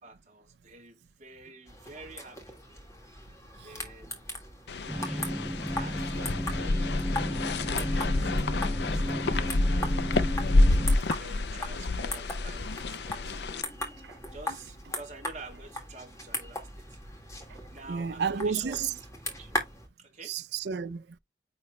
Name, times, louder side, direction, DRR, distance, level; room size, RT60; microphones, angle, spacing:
voice 1, 0.0-2.6 3.0-3.3 3.6-4.2 4.8-5.4 5.7-10.0 10.5-10.8 11.2-13.7 14.3-17.0 17.7-19.0 19.4-19.6 20.0-20.4, right 2 dB, 40° right, 2.2 m, -49 dB
sound 1, 1.7-19.9, left 1 dB, 15° left, 1.7 m, -39 dB
sound 2, 4.7-13.6, left 2 dB, 75° left, 0.6 m, -28 dB
sound 3, 4.9-11.0, equal, 5° right, 0.4 m, -34 dB
voice 2, 17.9-18.9 20.3-21.2, right 6 dB, 75° right, 0.4 m, -31 dB
9.5 x 3.2 x 3.2 m
head